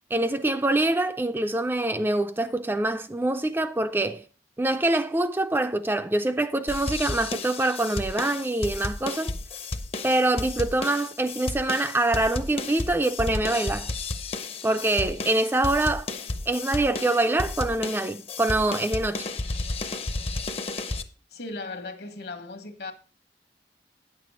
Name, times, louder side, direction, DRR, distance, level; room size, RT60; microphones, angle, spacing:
voice 1, 0.1-4.2 4.6-9.3 10.0-13.9 14.6-16.1 16.5-19.3, right 2 dB, 10° right, 0.4 m, -25 dB
sound 1, 6.7-21.0, left 2 dB, 35° left, 0.6 m, -32 dB
voice 2, 21.3-22.9, left 3 dB, 65° left, 1.2 m, -37 dB
9.5 x 6.8 x 4.8 m
head